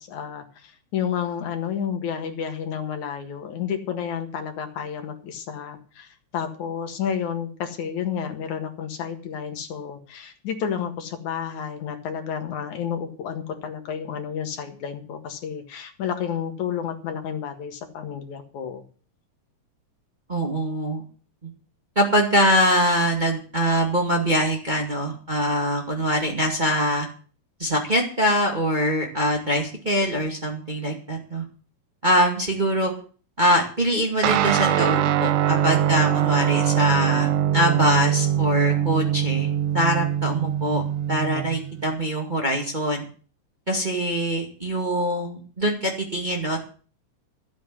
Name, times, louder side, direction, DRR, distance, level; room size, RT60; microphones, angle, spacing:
voice 1, 0.0-18.8, left 8 dB, 75° left, 6 dB, 3.1 m, -31 dB
voice 2, 20.3-21.0 21.4-21.5 22.0-27.1 27.6-31.4 32.0-32.9 33.4-39.5 39.7-40.8 41.1-43.1 43.7-46.6, equal, 15° right, 1 dB, 1.9 m, -23 dB
Guitar, 34.2-41.9, right 11 dB, 85° right, 2.3 m, -22 dB
13.5 x 8.0 x 7.7 m, 0.41 s
omnidirectional pair, 3.4 m